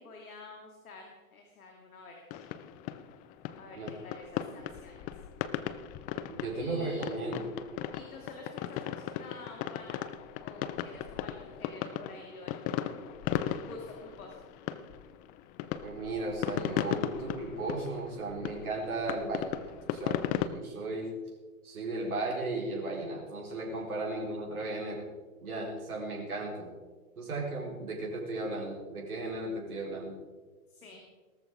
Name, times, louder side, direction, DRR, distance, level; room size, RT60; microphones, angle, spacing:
voice 1, 0.0-2.6 3.5-5.1 6.6-7.1 7.9-10.0 10.4-12.9 13.7-14.4 30.7-31.0, left 3 dB, 75° left, 1 dB, 2.4 m, -49 dB
sound 1, 2.3-20.5, left 11 dB, 20° left, 0.4 m, -36 dB
voice 2, 6.3-7.5 15.8-19.6 19.9-21.1 21.6-25.1 25.4-26.7 27.2-30.1, right 2 dB, 75° right, -2 dB, 4.3 m, -35 dB
18.0 x 13.5 x 3.8 m, 1.4 s
figure-of-eight pair, 105°, 44 cm